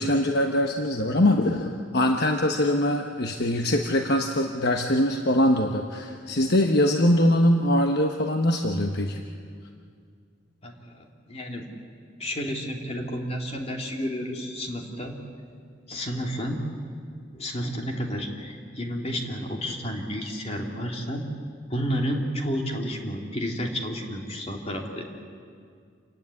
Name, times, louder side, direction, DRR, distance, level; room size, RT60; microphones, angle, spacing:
voice 1, 0.0-9.2, left 1 dB, 60° left, 4 dB, 1.1 m, -23 dB
voice 2, 10.6-11.7 12.2-15.1 15.9-16.6 17.3-21.2 21.7-25.1, equal, 35° left, 1 dB, 2.7 m, -31 dB
28.0 x 16.0 x 9.7 m, 2.2 s
head